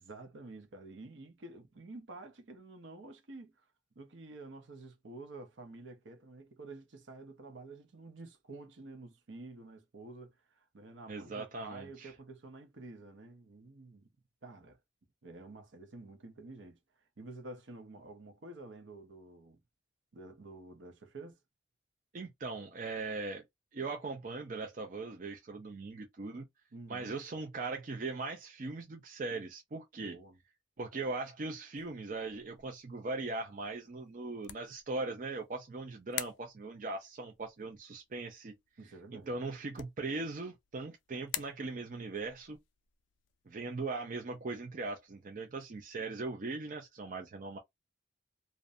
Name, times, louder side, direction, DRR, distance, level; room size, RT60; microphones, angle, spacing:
voice 1, 0.0-3.6 4.0-14.1 14.4-14.8 15.2-16.8 17.2-19.6 20.1-21.4 26.7-27.1 30.0-30.4 38.8-39.3, right 2 dB, 70° right, 0.7 m, -50 dB
voice 2, 11.1-12.1 22.1-23.4 23.7-26.5 26.9-30.2 30.8-38.6 39.1-42.6 43.5-47.6, right 3 dB, 45° right, 0.4 m, -39 dB
sound 1, 31.7-45.9, left 12 dB, 75° left, 0.3 m, -49 dB
2.5 x 2.1 x 2.5 m
head